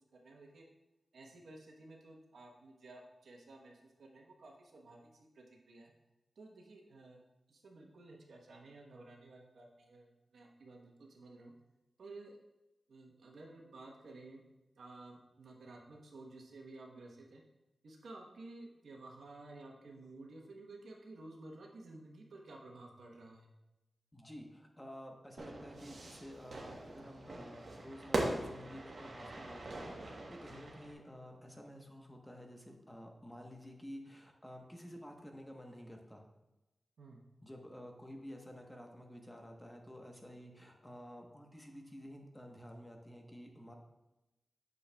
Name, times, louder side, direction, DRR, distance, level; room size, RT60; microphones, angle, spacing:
voice 1, 0.2-0.6 1.1-5.9 6.4-7.2 7.5-11.5 12.0-12.4 12.9-14.4 14.8-17.4 17.8-23.5 37.0-37.2, right 2 dB, 90° right, 0 dB, 1.0 m, -53 dB
voice 2, 24.1-36.2 37.4-43.7, equal, 10° left, 2 dB, 1.0 m, -51 dB
Fire / Fireworks, 25.4-30.9, right 2 dB, 65° right, 1.1 m, -41 dB
8.3 x 6.4 x 2.3 m, 0.98 s
cardioid pair, 65°, 0 cm